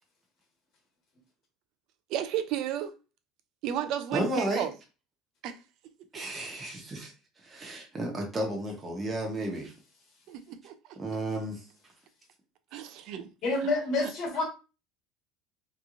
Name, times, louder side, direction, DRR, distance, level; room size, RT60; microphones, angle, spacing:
voice 1, 2.1-2.9 3.6-4.7 5.4-5.5 10.3-10.7 12.7-13.3, right 10 dB, 50° right, 0.4 m, -32 dB
voice 2, 4.1-4.7 6.1-7.1 7.4-9.7 11.0-11.6, right 1 dB, 15° right, 0.8 m, -32 dB
voice 3, 13.4-14.4, left 2 dB, 40° left, 1.4 m, -28 dB
3.5 x 3.0 x 2.4 m
cardioid pair, 160°, 0 cm